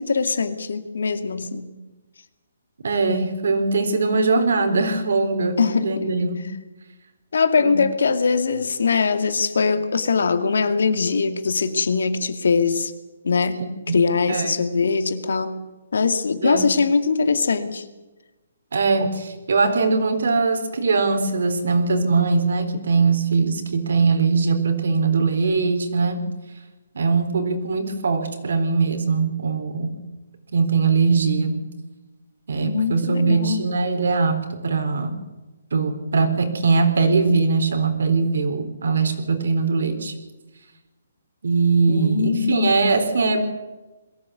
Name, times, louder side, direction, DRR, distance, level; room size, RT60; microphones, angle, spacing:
voice 1, 0.0-1.7 5.6-6.1 7.3-12.9 13.2-13.7 13.9-15.6 15.9-17.8 32.6-33.6 41.9-42.8, left 5 dB, 75° left, 9 dB, 2.3 m, -22 dB
voice 2, 2.8-6.5 7.6-7.8 13.9-14.0 14.3-14.6 16.4-16.7 18.7-26.2 26.9-29.9 30.5-31.6 32.5-35.2 35.7-40.1 41.4-43.5, right 4 dB, 65° right, 7 dB, 4.1 m, -21 dB
22.5 x 15.5 x 8.3 m, 1.1 s
hypercardioid pair, 175°, 0 cm